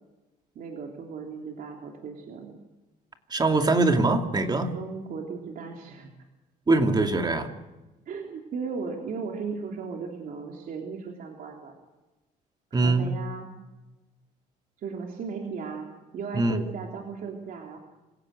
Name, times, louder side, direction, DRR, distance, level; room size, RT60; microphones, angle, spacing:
voice 1, 0.5-2.5 4.7-6.1 8.1-11.7 12.7-13.5 14.8-17.8, right 5 dB, 55° right, 1 dB, 3.4 m, -36 dB
voice 2, 3.3-4.7 6.7-7.5 12.7-13.1 16.3-16.6, right 2 dB, 25° right, 5 dB, 2.7 m, -22 dB
26.0 x 16.5 x 7.9 m, 1.1 s
cardioid pair, 110°, 17 cm